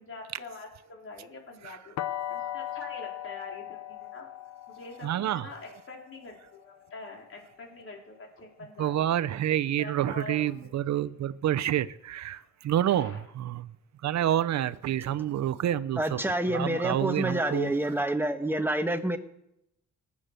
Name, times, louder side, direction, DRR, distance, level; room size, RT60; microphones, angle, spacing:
voice 1, 0.0-2.0 2.3-4.3 4.7-9.0 9.8-10.5 12.3-12.5 12.8-13.2 16.4-17.6 18.3-18.5, left 3 dB, 45° left, 4.3 m, -45 dB
sound 1, 2.0-7.8, left 12 dB, 65° left, 0.8 m, -39 dB
voice 2, 5.0-5.5 8.8-13.7 14.0-16.2 16.5-17.7, right 11 dB, 65° right, 0.8 m, -28 dB
voice 3, 16.0-19.2, right 1 dB, 5° right, 1.4 m, -28 dB
19.0 x 8.6 x 6.8 m
cardioid pair, 90°, 30 cm